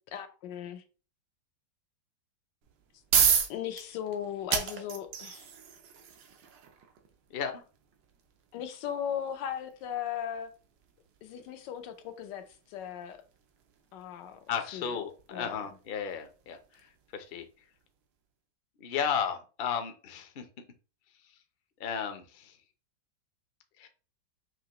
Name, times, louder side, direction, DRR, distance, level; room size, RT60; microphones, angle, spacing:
voice 1, 0.1-0.8 3.5-5.5 8.5-10.5 11.2-13.2 13.9-14.4 14.7-15.0 15.3-15.6, left 9 dB, 85° left, 1.3 m, -37 dB
sound 1, 2.6-17.5, right 7 dB, 85° right, 1.5 m, -35 dB
voice 2, 7.3-7.6 14.5-16.6 17.1-17.4 18.8-20.4 21.8-22.5 23.8-23.9, left 7 dB, 60° left, 0.6 m, -34 dB
5.9 x 2.8 x 2.9 m
omnidirectional pair, 1.9 m